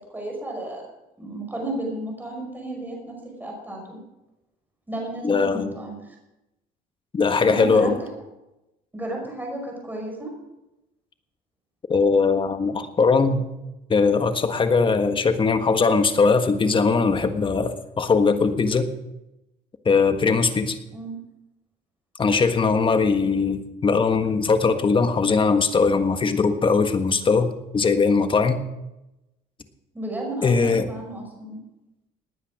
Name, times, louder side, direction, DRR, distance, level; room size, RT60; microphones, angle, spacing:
voice 1, 0.1-0.8 1.2-4.0 4.9-6.2 7.5-7.9 8.9-10.3 20.9-21.1 29.9-31.6, right 1 dB, 10° right, 0 dB, 5.7 m, -33 dB
voice 2, 5.2-5.7 7.1-8.0 11.9-13.4 13.9-18.9 19.8-20.8 22.2-28.6 30.4-30.9, left 4 dB, 30° left, 8 dB, 1.5 m, -20 dB
19.0 x 9.5 x 6.2 m, 0.95 s
cardioid pair, 110°, 17 cm